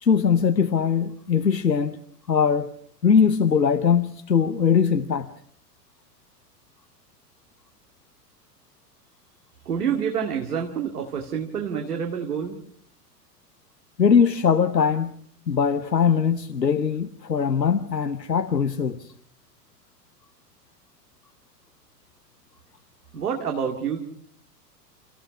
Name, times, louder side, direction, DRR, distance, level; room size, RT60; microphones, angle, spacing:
voice 1, 0.0-2.0 2.3-2.7 3.0-5.3 14.0-15.1 15.5-19.1, left 6 dB, 85° left, 0.9 m, -21 dB
voice 2, 9.7-12.6 23.1-24.0, right 7 dB, 65° right, 2.3 m, -27 dB
30.0 x 15.0 x 6.0 m
figure-of-eight pair, 90°, 49 cm